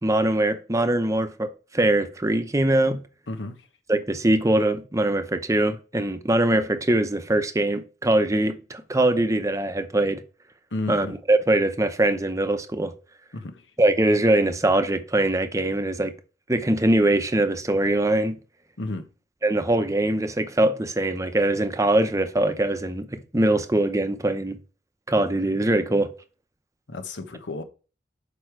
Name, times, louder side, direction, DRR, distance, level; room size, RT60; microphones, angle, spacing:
voice 1, 0.0-3.0 3.9-10.2 10.9-12.9 13.8-16.1 16.5-18.4 19.4-24.6 25.1-26.1, right 1 dB, 20° right, 0.7 m, -22 dB
voice 2, 10.7-11.1 13.3-13.6 18.8-19.0 26.9-27.6, left 2 dB, 85° left, 1.0 m, -32 dB
6.6 x 5.1 x 4.5 m
head